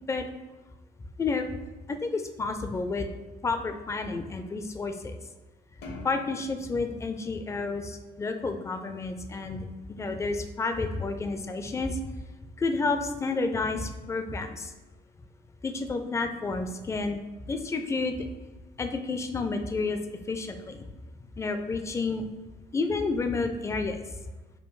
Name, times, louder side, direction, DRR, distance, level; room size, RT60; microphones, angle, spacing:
voice 1, 1.2-1.5 1.9-3.1 3.4-5.2 6.0-12.0 12.6-14.7 15.6-17.2 17.5-18.3 18.8-20.0 20.3-20.8 21.4-22.2 22.7-24.0, left 3 dB, 15° left, 7 dB, 0.3 m, -30 dB
sound 1, 5.8-8.4, left 2 dB, 75° left, 0.9 m, -47 dB
5.5 x 2.2 x 3.1 m, 1.1 s
cardioid pair, 110°, 17 cm